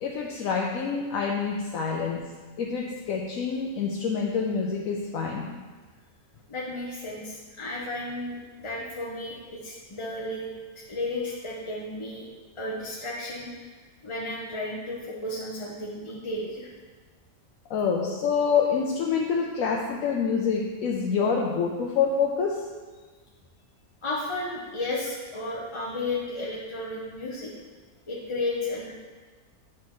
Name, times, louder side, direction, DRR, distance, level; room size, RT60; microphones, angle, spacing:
voice 1, 0.0-2.3 2.6-5.5 17.7-22.6, left 6 dB, 70° left, 0 dB, 1.0 m, -27 dB
voice 2, 6.5-10.5 10.8-12.3 12.6-13.7 14.0-16.7 24.0-27.5 28.1-28.9, left 2 dB, 30° left, -4 dB, 0.6 m, -33 dB
8.3 x 6.2 x 3.0 m, 1.4 s
omnidirectional pair, 1.6 m